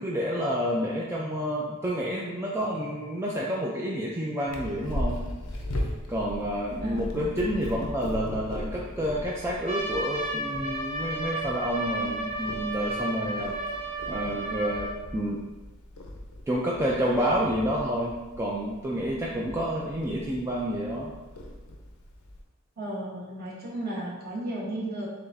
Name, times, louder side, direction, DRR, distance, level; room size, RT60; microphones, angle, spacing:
voice 1, 0.0-5.2 6.1-13.5 14.1-15.4 16.5-21.1, equal, 15° right, -4 dB, 0.4 m, -29 dB
Purr, 4.5-22.4, left 1 dB, 85° left, 0.6 m, -38 dB
voice 2, 6.8-7.3 22.8-25.1, right 1 dB, 45° right, -5 dB, 1.2 m, -34 dB
Trumpet, 9.6-15.0, right 2 dB, 30° right, 0.8 m, -33 dB
6.8 x 2.4 x 2.6 m, 1.2 s
head